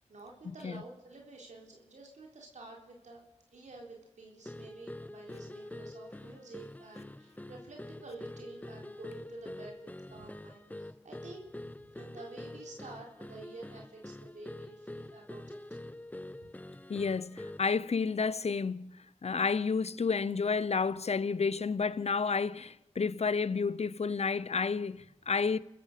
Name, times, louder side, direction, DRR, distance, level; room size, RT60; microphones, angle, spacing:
voice 1, 0.1-3.2 3.5-15.9 16.4-16.5, right 2 dB, 90° right, 3.7 m, -50 dB
sound 1, 4.4-17.8, left 1 dB, 15° left, 0.7 m, -46 dB
voice 2, 16.9-19.0 19.2-25.6, left 5 dB, 65° left, 0.8 m, -30 dB
27.5 x 15.0 x 6.7 m
cardioid pair, 45°, 12 cm